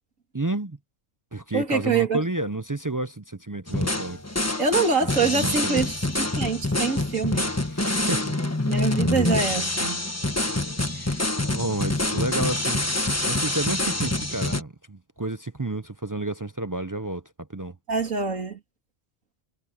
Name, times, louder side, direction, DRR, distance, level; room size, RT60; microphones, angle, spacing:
voice 1, 0.3-0.8 1.3-4.2 5.2-5.9 7.7-8.3 8.9-9.1 10.9-11.3 11.5-12.8 13.3-17.2 17.5-17.7, right 2 dB, 30° right, 0.4 m, -30 dB
voice 2, 1.5-2.2 4.6-7.5 8.6-10.0 17.9-18.6, right 4 dB, 80° right, 3.2 m, -25 dB
sound 1, 3.7-14.6, left 2 dB, 10° left, 1.3 m, -26 dB
omnidirectional pair, 1.3 m